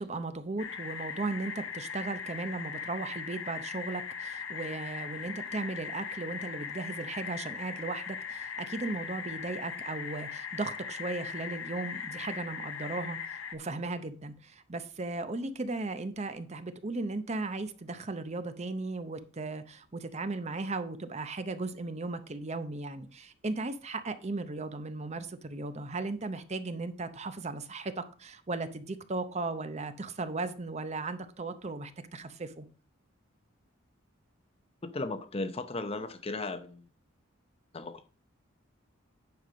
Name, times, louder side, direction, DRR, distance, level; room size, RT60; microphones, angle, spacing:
voice 1, 0.0-32.7, right 3 dB, 35° right, 0.7 m, -36 dB
sound 1, 0.6-13.6, left 6 dB, 75° left, 1.2 m, -39 dB
voice 2, 34.8-36.9 37.7-38.1, left 2 dB, 30° left, 0.6 m, -36 dB
9.3 x 5.3 x 5.1 m
head